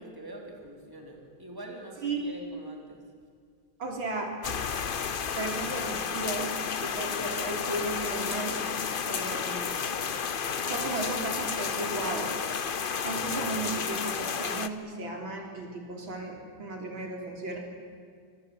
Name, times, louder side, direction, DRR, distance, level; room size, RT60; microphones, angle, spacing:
voice 1, 0.0-3.0 9.4-9.7, right 1 dB, 10° right, 0 dB, 4.0 m, -44 dB
voice 2, 3.8-4.3 5.4-6.5 6.8-8.6 9.1-9.9 10.5-12.4 13.0-17.6, right 2 dB, 80° right, 1 dB, 4.6 m, -35 dB
sound 1, 4.4-14.7, left 6 dB, 50° left, 0.6 m, -32 dB
26.5 x 23.5 x 8.4 m, 2.1 s
omnidirectional pair, 2.1 m